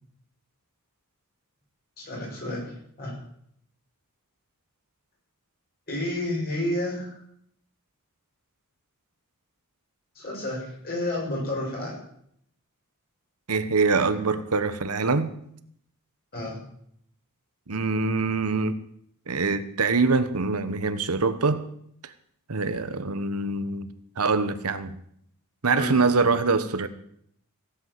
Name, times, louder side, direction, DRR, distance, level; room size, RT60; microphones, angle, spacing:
voice 1, 2.0-2.7 3.0-3.2 5.9-7.2 10.2-12.0 16.3-16.6 25.8-25.9, left 1 dB, 45° left, 7.2 m, -30 dB
voice 2, 13.5-15.4 17.7-18.8 19.3-21.7 22.0-22.1 22.5-23.9 24.2-25.0 25.6-26.9, right 4 dB, 90° right, 1.1 m, -24 dB
16.5 x 8.3 x 7.7 m
head